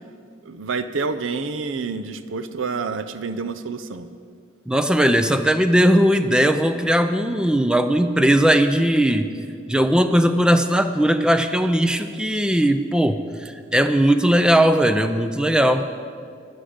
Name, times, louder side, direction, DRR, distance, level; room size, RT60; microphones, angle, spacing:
voice 1, 0.5-4.1, right 4 dB, 75° right, 12 dB, 0.6 m, -28 dB
voice 2, 4.7-9.3 9.7-15.9, equal, 5° right, 9 dB, 0.4 m, -18 dB
13.0 x 9.9 x 5.1 m, 2.2 s
head